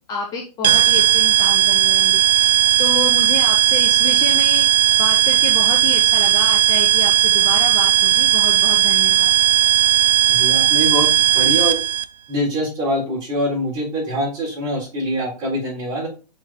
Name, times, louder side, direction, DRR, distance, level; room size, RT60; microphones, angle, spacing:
voice 1, 0.1-9.4, left 4 dB, 15° left, -1 dB, 0.9 m, -29 dB
sound 1, 0.6-12.0, right 13 dB, 75° right, 0.6 m, -16 dB
voice 2, 10.3-11.8 12.3-16.1, equal, 20° right, -4 dB, 3.8 m, -24 dB
6.0 x 4.5 x 3.7 m, 0.34 s
figure-of-eight pair, 130°, 21 cm